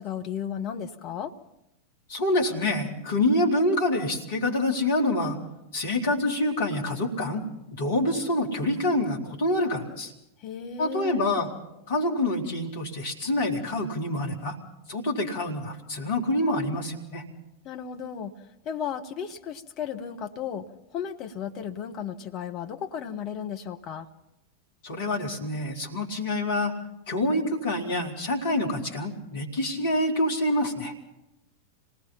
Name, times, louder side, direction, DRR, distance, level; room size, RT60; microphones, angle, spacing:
voice 1, 0.0-1.3 10.4-11.2 17.6-18.3 18.6-20.7 20.9-24.1, left 8 dB, 35° left, 5 dB, 1.4 m, -34 dB
voice 2, 2.1-5.4 5.7-7.4 7.8-10.1 10.8-11.5 11.9-14.6 14.9-17.2 24.8-26.7 27.1-30.9, left 1 dB, 60° left, 0 dB, 3.8 m, -26 dB
27.0 x 19.0 x 5.8 m, 0.89 s
figure-of-eight pair, 90°, 0 cm